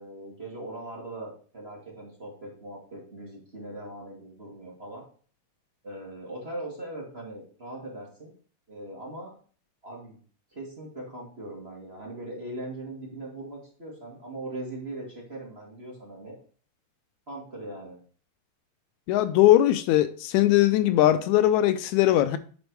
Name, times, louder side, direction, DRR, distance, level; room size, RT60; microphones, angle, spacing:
voice 1, 0.0-5.0 5.8-8.3 8.7-9.3 9.8-10.2 10.5-16.4 17.3-18.0, right 1 dB, 25° right, 1.9 m, -40 dB
voice 2, 19.1-22.4, left 13 dB, 80° left, 1.9 m, -20 dB
10.5 x 4.5 x 4.7 m
omnidirectional pair, 3.4 m